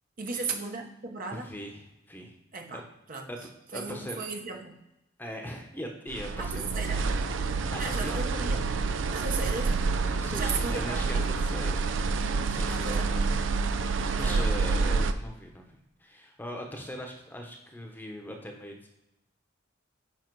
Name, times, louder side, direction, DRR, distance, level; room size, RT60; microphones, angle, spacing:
voice 1, 0.2-1.5 2.5-3.3 3.7-4.8 6.4-7.0 7.8-8.6 9.1-9.9 10.3-11.6 12.7-13.4 14.2-14.6, right 4 dB, 45° right, 3 dB, 1.1 m, -36 dB
voice 2, 1.3-1.8 2.1-2.3 2.7-2.8 3.3-3.4 3.7-4.2 5.2-7.0 7.5-8.4 10.2-11.9 12.5-13.2 13.9-15.7 16.0-18.9, equal, 10° left, 2 dB, 1.0 m, -40 dB
sound 1, 6.1-15.1, right 4 dB, 70° right, 0.5 m, -28 dB
7.2 x 5.2 x 4.7 m, 0.89 s
head